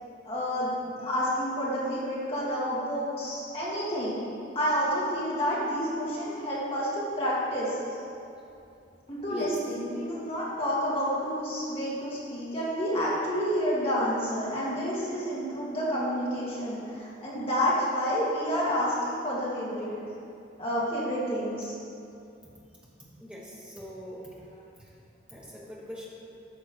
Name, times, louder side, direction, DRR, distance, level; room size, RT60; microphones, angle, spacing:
voice 1, 0.2-4.3 4.6-7.8 9.1-19.9 20.6-21.7, equal, 30° left, -8 dB, 1.8 m, -29 dB
voice 2, 23.2-24.3 24.8-24.9 25.3-26.1, equal, 5° right, -6 dB, 1.2 m, -42 dB
9.1 x 5.5 x 4.3 m, 2.6 s
head